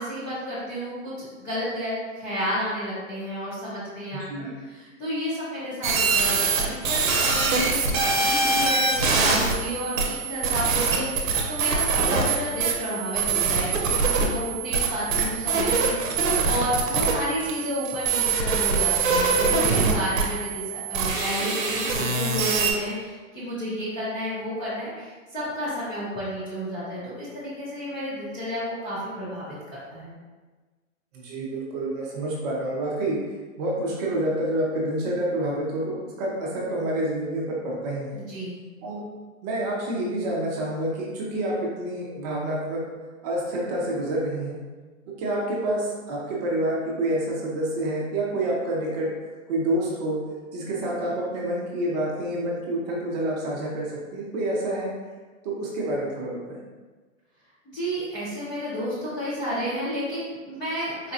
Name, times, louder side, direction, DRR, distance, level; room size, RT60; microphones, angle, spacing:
voice 1, 0.0-29.5 29.9-30.1 38.1-38.6 57.7-61.1, equal, 10° left, -12 dB, 0.4 m, -31 dB
voice 2, 4.2-4.5 31.1-33.2 33.6-38.2 38.8-39.0 39.4-42.8 43.2-44.6 45.2-49.1 49.5-50.2 50.5-54.9 55.4-56.6, right 1 dB, 30° right, -3 dB, 0.6 m, -28 dB
sound 1, 5.8-22.7, right 4 dB, 75° right, 0.8 m, -24 dB
4.0 x 2.2 x 2.7 m, 1.3 s
hypercardioid pair, 135°, 41 cm